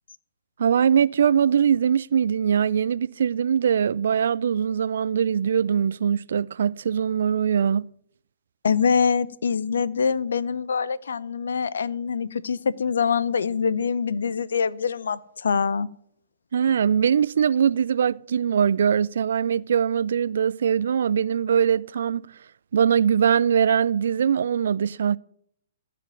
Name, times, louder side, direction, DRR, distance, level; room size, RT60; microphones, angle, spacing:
voice 1, 0.6-7.9 16.5-22.2 22.7-25.2, right 8 dB, 65° right, 0.4 m, -22 dB
voice 2, 8.6-15.9, left 6 dB, 70° left, 0.6 m, -24 dB
15.5 x 5.1 x 9.3 m
figure-of-eight pair, 120°, 0 cm